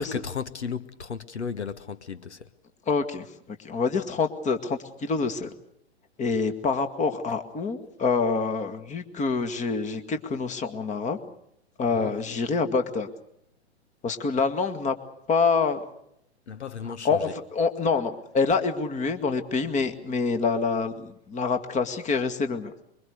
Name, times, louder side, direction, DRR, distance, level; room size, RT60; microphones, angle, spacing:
voice 1, 0.0-2.5 11.9-12.2 16.5-17.3, left 6 dB, 80° left, 1.3 m, -35 dB
voice 2, 2.9-5.5 6.2-11.2 11.8-13.1 14.0-14.9 15.3-15.8 17.0-22.7, left 4 dB, 20° left, 2.1 m, -26 dB
24.5 x 23.0 x 6.5 m
figure-of-eight pair, 105°, 33 cm